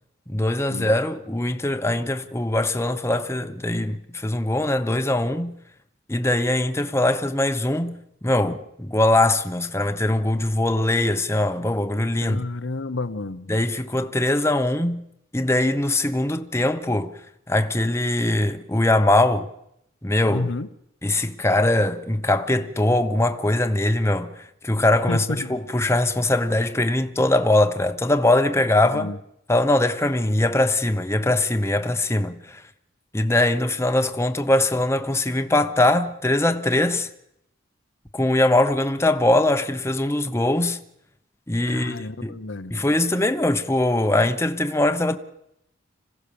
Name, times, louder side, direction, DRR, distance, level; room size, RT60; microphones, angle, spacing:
voice 1, 0.3-5.6 6.1-12.4 13.5-15.0 15.3-17.2 17.5-19.5 20.0-20.5 21.0-29.1 29.5-32.6 33.1-37.1 38.1-40.8 41.5-42.4 42.7-45.2, left 1 dB, 15° left, 1.0 m, -22 dB
voice 2, 12.2-13.5 20.3-20.7 25.1-25.6 28.9-29.2 41.7-42.8, left 2 dB, 70° left, 0.9 m, -30 dB
26.5 x 16.0 x 7.0 m
head